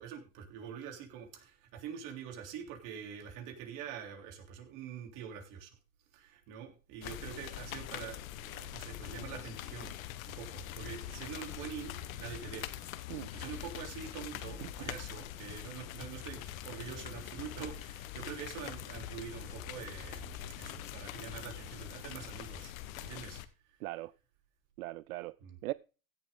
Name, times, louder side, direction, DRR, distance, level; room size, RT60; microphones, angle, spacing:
voice 1, 0.0-5.8 6.1-9.9 10.2-12.7 13.1-20.3 20.6-23.8 25.4-25.6, right 8 dB, 50° right, 3.5 m, -45 dB
sound 1, 7.0-23.4, left 13 dB, 70° left, 1.3 m, -44 dB
sound 2, 10.8-21.5, left 3 dB, 5° left, 1.2 m, -53 dB
voice 2, 14.6-14.9 23.8-24.1 24.8-25.4 25.6-25.7, right 19 dB, 80° right, 0.5 m, -39 dB
16.0 x 7.6 x 3.8 m
supercardioid pair, 120°, 42 cm